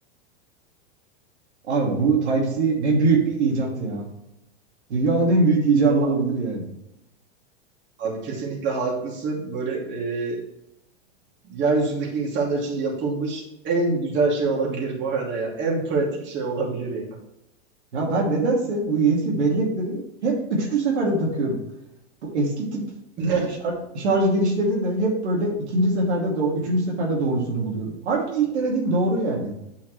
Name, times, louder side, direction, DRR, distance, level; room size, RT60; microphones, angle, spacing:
voice 1, 1.6-4.1 4.9-6.7 17.9-21.6 22.2-22.8 23.3-29.5, right 3 dB, 85° right, -2 dB, 2.7 m, -22 dB
voice 2, 8.0-10.4 11.4-17.1 23.2-23.5, right 3 dB, 35° right, -3 dB, 2.7 m, -25 dB
8.7 x 5.7 x 3.2 m, 0.85 s
supercardioid pair, 130°, 33 cm